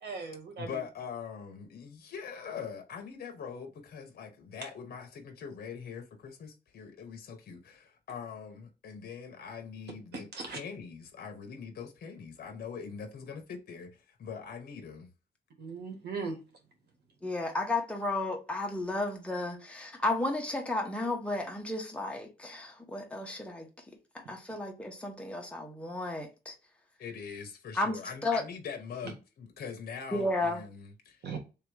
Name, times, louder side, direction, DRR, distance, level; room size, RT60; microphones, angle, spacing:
voice 1, 0.0-0.8 10.3-10.6 15.6-16.4 31.2-31.4, right 4 dB, 70° right, 1.6 m, -38 dB
voice 2, 0.6-15.1 24.5-24.6 27.0-31.3, left 6 dB, 60° left, 0.9 m, -43 dB
voice 3, 17.2-23.7 24.1-26.5 27.7-28.4 30.1-30.6, left 2 dB, 5° left, 1.1 m, -33 dB
3.4 x 2.9 x 4.7 m
cardioid pair, 125°, 17 cm